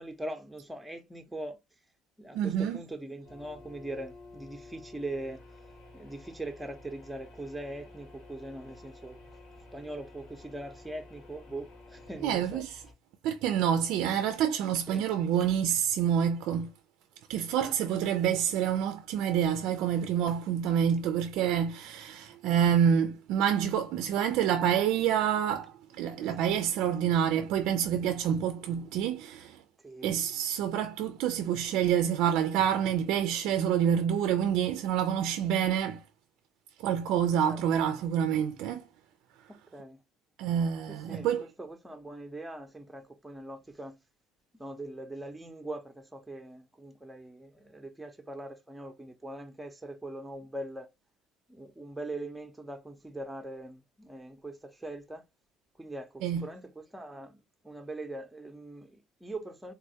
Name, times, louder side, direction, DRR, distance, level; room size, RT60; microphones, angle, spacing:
voice 1, 0.0-1.6 2.2-5.4 5.9-9.2 9.7-12.6 14.9-15.1 17.5-17.7 26.2-26.5 29.8-30.2 37.5-37.8 39.5-40.0 40.9-44.0 44.5-50.9 51.5-55.3 55.8-59.7, right 1 dB, 5° right, 0.6 m, -42 dB
voice 2, 2.3-2.8 12.2-12.8 13.2-16.7 17.3-29.6 30.0-36.0 36.8-38.8 40.4-41.4 56.2-56.4, right 9 dB, 75° right, 0.3 m, -27 dB
sound 1, 3.2-12.9, left 2 dB, 70° left, 1.5 m, -51 dB
3.4 x 2.2 x 2.7 m
supercardioid pair, 95°, 0 cm